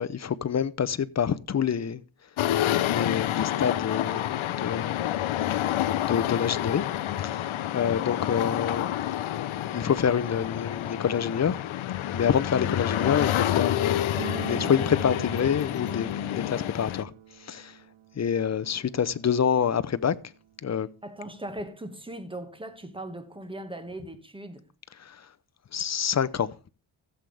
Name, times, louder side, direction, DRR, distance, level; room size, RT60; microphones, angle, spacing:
voice 1, 0.0-2.0 2.8-4.3 4.6-5.0 6.1-6.8 7.2-9.0 9.7-11.6 12.1-17.1 17.4-17.8 18.2-20.2 20.6-20.9 25.0-25.2 25.7-26.5, left 7 dB, 35° left, 0.6 m, -27 dB
sound 1, 2.4-17.0, left 12 dB, 70° left, 0.8 m, -28 dB
sound 2, 14.2-20.9 21.1-21.2 21.5-21.6 22.3-22.4 22.7-23.9, right 11 dB, 75° right, 1.1 m, -44 dB
voice 2, 21.0-24.6, right 1 dB, 10° right, 1.7 m, -39 dB
15.5 x 7.8 x 3.4 m
cardioid pair, 95°, 49 cm